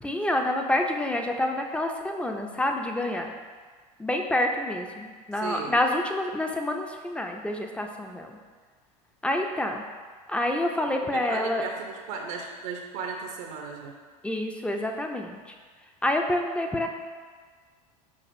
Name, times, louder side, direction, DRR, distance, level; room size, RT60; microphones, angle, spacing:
voice 1, 0.0-3.3 4.0-8.4 9.2-9.8 10.3-11.6 14.2-15.4 16.0-16.9, left 1 dB, 5° left, 3 dB, 0.3 m, -27 dB
voice 2, 5.3-5.8 10.9-13.9, right 5 dB, 70° right, 2 dB, 0.6 m, -36 dB
5.9 x 2.4 x 2.6 m, 1.5 s
hypercardioid pair, 85°, 20 cm